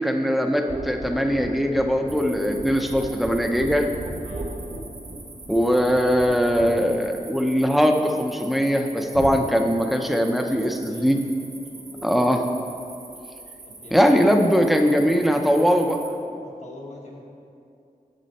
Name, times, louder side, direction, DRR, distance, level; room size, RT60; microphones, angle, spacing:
voice 1, 0.0-3.9 5.5-11.2 12.0-12.4 13.9-16.0, equal, ahead, 4 dB, 0.6 m, -21 dB
sound 1, 0.7-8.2 9.1-9.4, right 2 dB, 55° right, 1.0 m, -36 dB
sound 2, 2.1-16.1, right 3 dB, 85° right, 1.3 m, -44 dB
voice 2, 10.5-11.2 11.7-12.0 13.7-14.0 14.8-15.1 15.6-15.8 16.4-17.2, left 2 dB, 55° left, -2 dB, 1.3 m, -45 dB
7.6 x 7.4 x 4.1 m, 2.5 s
wide cardioid pair, 100°, 14 cm